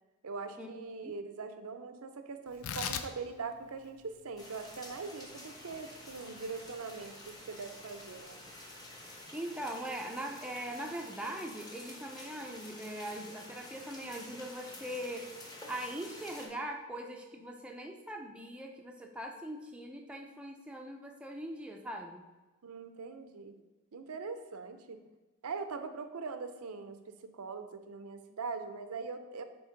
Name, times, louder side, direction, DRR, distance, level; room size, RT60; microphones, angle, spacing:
voice 1, 0.2-8.4 22.6-23.5 23.9-25.0 25.4-29.4, right 4 dB, 85° right, 8 dB, 0.6 m, -42 dB
Tearing, 2.5-9.2, left 7 dB, 80° left, 0.5 m, -45 dB
sound 1, 4.4-16.5, left 1 dB, 20° left, 0.9 m, -49 dB
voice 2, 9.3-22.3, right 1 dB, 5° right, 1 dB, 0.4 m, -41 dB
7.0 x 3.5 x 5.0 m, 1.2 s
head